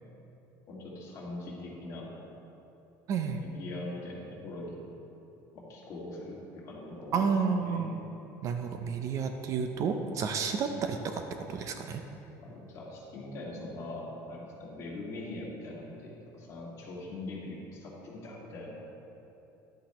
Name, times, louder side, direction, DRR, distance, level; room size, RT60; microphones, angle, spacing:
voice 1, 0.7-2.2 3.4-4.8 5.5-7.2 7.6-7.9 12.4-18.7, left 2 dB, 35° left, -4 dB, 2.0 m, -42 dB
voice 2, 3.1-3.6 7.1-8.0 8.4-11.2 11.5-12.0, right 5 dB, 40° right, 6 dB, 0.5 m, -31 dB
11.5 x 8.7 x 3.0 m, 3.0 s
cardioid pair, 160°, 9 cm